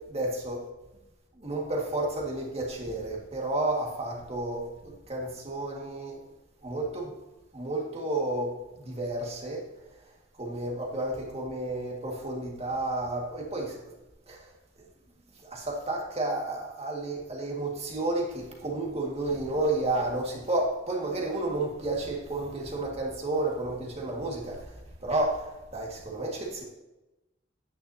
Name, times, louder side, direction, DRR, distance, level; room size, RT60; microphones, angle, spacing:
voice 1, 0.1-0.7 1.4-6.2 6.6-7.2 7.5-9.7 10.4-13.8 14.3-14.5 15.4-26.6, right 2 dB, 35° right, -1 dB, 1.9 m, -31 dB
10.0 x 9.6 x 2.8 m, 1.0 s
head